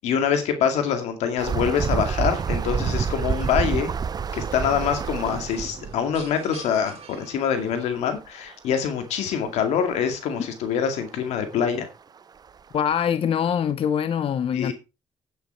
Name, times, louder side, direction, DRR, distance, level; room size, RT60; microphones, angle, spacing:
voice 1, 0.0-3.9 4.3-11.9 14.5-14.7, left 7 dB, 85° left, 2.2 m, -25 dB
sound 1, 1.4-5.8 7.7-7.8 8.0-8.1 9.0-9.1 11.5-11.6 12.2-12.3 12.8-12.9, right 6 dB, 35° right, 0.5 m, -27 dB
sound 2, 4.1-8.1, right 6 dB, 60° right, 2.2 m, -40 dB
voice 2, 12.7-14.7, left 8 dB, 60° left, 0.7 m, -23 dB
9.2 x 8.1 x 4.5 m
cardioid pair, 75°, 11 cm